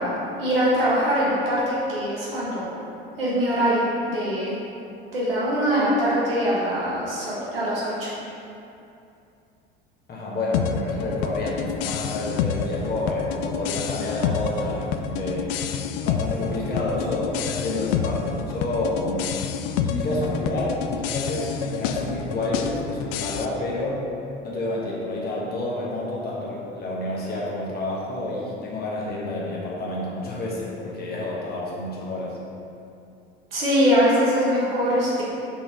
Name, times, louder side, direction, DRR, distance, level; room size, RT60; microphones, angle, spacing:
voice 1, 0.0-2.8 3.2-4.6 5.1-8.1 33.5-35.2, equal, 75° right, -8 dB, 1.3 m, -23 dB
voice 2, 10.1-15.7 16.0-19.3 19.8-24.1 24.4-32.4, left 2 dB, 35° left, -5 dB, 1.3 m, -29 dB
sound 1, 10.5-23.5, left 7 dB, 50° left, 0.4 m, -28 dB
5.7 x 4.1 x 4.5 m, 2.6 s
figure-of-eight pair, 65°, 29 cm